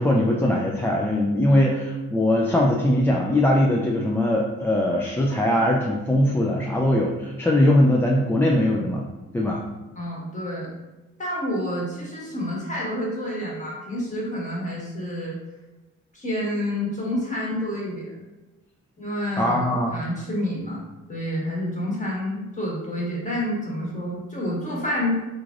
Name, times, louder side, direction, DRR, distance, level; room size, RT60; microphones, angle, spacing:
voice 1, 0.0-9.0 9.3-9.6 19.4-19.9, left 1 dB, 10° left, -2 dB, 0.3 m, -21 dB
voice 2, 9.9-10.7 11.2-15.4 16.1-18.2 19.0-20.8 21.1-25.2, left 1 dB, 25° left, -4 dB, 1.4 m, -28 dB
3.8 x 3.1 x 2.5 m, 1.1 s
cardioid pair, 90°, 30 cm